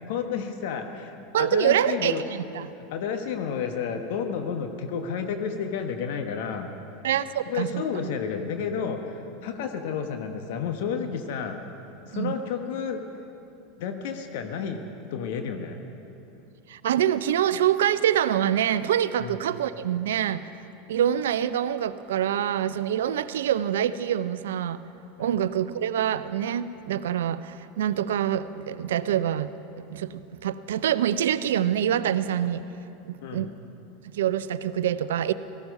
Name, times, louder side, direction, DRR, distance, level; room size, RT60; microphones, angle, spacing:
voice 1, 0.1-2.2 2.8-6.7 7.5-11.6 12.1-13.0 13.8-14.8 15.1-15.8 19.2-19.3 25.2-25.4 33.2-33.5, left 6 dB, 65° left, 6 dB, 1.2 m, -31 dB
voice 2, 1.3-2.7 7.0-7.8 12.1-12.3 16.7-20.5 20.9-24.8 25.2-29.5 29.9-32.6 33.1-33.5 34.1-35.3, right 10 dB, 75° right, 15 dB, 0.5 m, -25 dB
18.0 x 14.5 x 5.4 m, 2.8 s
hypercardioid pair, 85°, 0 cm